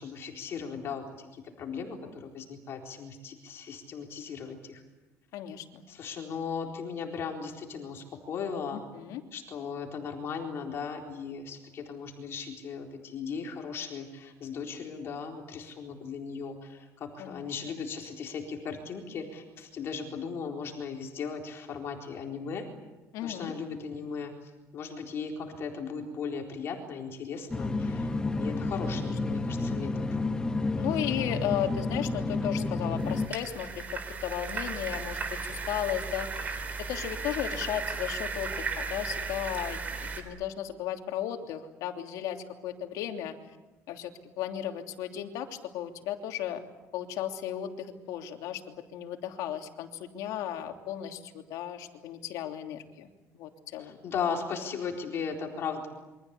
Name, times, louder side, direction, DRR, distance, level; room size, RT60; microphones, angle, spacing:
voice 1, 0.0-4.8 5.9-8.8 9.3-22.7 23.2-24.3 24.7-28.1 28.4-30.1 53.8-55.9, left 6 dB, 45° left, 2 dB, 4.1 m, -37 dB
voice 2, 5.3-5.8 8.7-9.2 17.2-17.4 23.1-23.5 28.9-29.4 30.8-33.9 34.2-43.3 43.9-44.1 44.4-46.6 46.9-54.0, left 11 dB, 75° left, 4 dB, 3.0 m, -35 dB
sound 1, 27.5-33.3, left 3 dB, 15° left, 1.1 m, -30 dB
sound 2, 33.0-40.2, right 4 dB, 25° right, 3.9 m, -35 dB
28.0 x 24.0 x 8.4 m, 1.1 s
cardioid pair, 160°, 6 cm